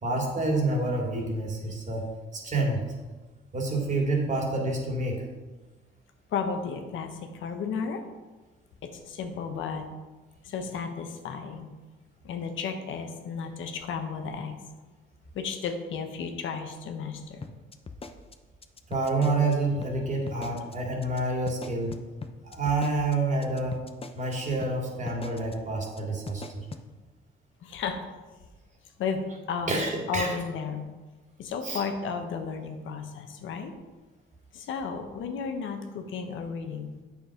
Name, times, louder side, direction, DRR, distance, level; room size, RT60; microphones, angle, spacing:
voice 1, 0.0-2.1 2.3-2.9 3.5-5.2 18.9-21.9 22.4-23.8 24.1-26.7 29.7-30.3 31.6-31.8, right 2 dB, 40° right, 0 dB, 2.6 m, -28 dB
voice 2, 6.3-8.0 8.8-9.9 10.4-11.7 12.2-14.6 15.3-17.5 27.6-28.1 29.0-30.9 31.4-33.7 34.5-36.9, left 5 dB, 75° left, 5 dB, 1.1 m, -33 dB
sound 1, 17.4-19.5 19.8-19.9 20.3-20.7 21.0-21.2 21.5-24.3 24.6-24.7 25.1-25.5 25.8-26.0 26.3-26.8, left 4 dB, 30° left, 0.7 m, -41 dB
8.2 x 6.4 x 5.0 m, 1.2 s
cardioid pair, 90°, 20 cm